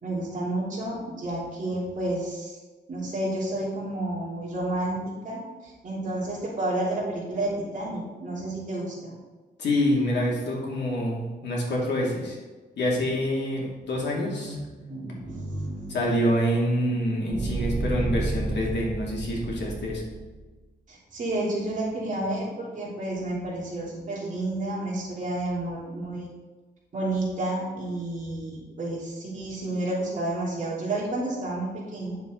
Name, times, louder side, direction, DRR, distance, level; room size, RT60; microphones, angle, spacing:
voice 1, 0.0-2.6 2.9-5.0 5.2-9.1 14.2-16.0 20.9-26.3 26.9-32.2, right 1 dB, 45° right, -6 dB, 3.3 m, -31 dB
voice 2, 9.6-12.4 12.8-14.6 15.9-20.0, equal, 85° left, -3 dB, 2.6 m, -26 dB
sound 1, 17.3-20.4, right 2 dB, 30° right, 0.7 m, -31 dB
9.7 x 7.0 x 3.9 m, 1.3 s
wide cardioid pair, 150°, 18 cm